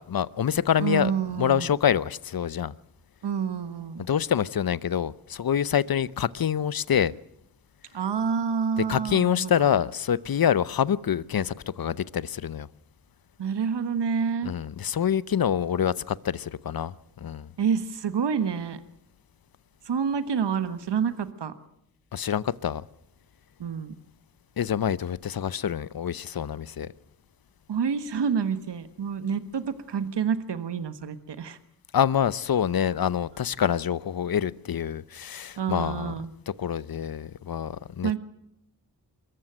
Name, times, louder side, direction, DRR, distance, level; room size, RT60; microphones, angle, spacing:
voice 1, 0.0-2.7 4.1-7.1 8.9-12.7 14.4-17.5 22.1-22.8 24.6-26.9 31.9-36.1 36.5-38.1, left 9 dB, 55° left, 0.8 m, -26 dB
voice 2, 0.8-1.7 3.2-4.1 7.9-9.7 13.4-14.5 17.6-18.8 19.8-21.5 23.6-23.9 27.7-31.6 35.6-36.3 38.0-38.2, right 6 dB, 75° right, 1.4 m, -28 dB
23.0 x 14.5 x 9.1 m
cardioid pair, 40°, 41 cm